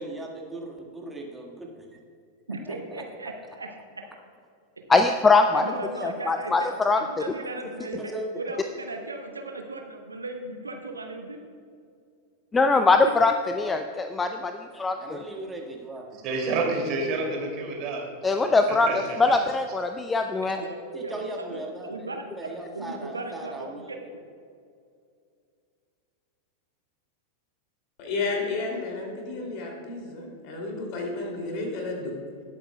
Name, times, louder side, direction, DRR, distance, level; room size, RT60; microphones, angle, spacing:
voice 1, 0.0-1.8 2.7-2.8 8.0-8.2 13.6-13.8 15.0-16.1 20.9-24.1, right 2 dB, 10° right, -1 dB, 1.7 m, -38 dB
voice 2, 2.5-4.0 5.5-11.4 20.4-24.0, right 2 dB, 80° right, 4 dB, 1.0 m, -37 dB
voice 3, 4.9-5.6 6.0-7.0 12.5-13.3 13.6-15.2 18.2-20.6, left 3 dB, 15° left, 7 dB, 0.5 m, -22 dB
voice 4, 16.2-18.0 18.9-19.4, right 3 dB, 40° right, 0 dB, 2.7 m, -28 dB
voice 5, 28.0-32.1, left 3 dB, 40° left, 0 dB, 2.8 m, -32 dB
19.0 x 8.5 x 2.3 m, 2.3 s
figure-of-eight pair, 90°, 0 cm